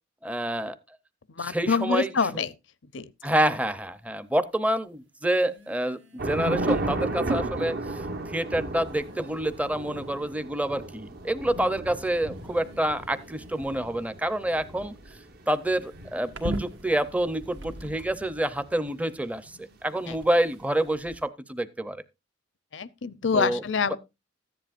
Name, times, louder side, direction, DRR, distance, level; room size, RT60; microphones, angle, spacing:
voice 1, 0.2-0.8 1.4-2.4 3.2-14.9 15.5-22.0 23.3-23.6, right 1 dB, 10° right, 0.7 m, -28 dB
voice 2, 1.4-2.5 2.9-3.1 20.1-20.2 22.7-24.0, left 5 dB, 70° left, 0.7 m, -26 dB
sound 1, 3.4-3.5 5.3-7.1 8.1-8.2 8.8-10.6 11.1-11.6 12.3-18.4 19.1-21.3, right 1 dB, 70° right, 1.8 m, -43 dB
Thunder / Rain, 6.2-18.7, right 2 dB, 55° right, 1.1 m, -34 dB
14.5 x 10.0 x 2.5 m
head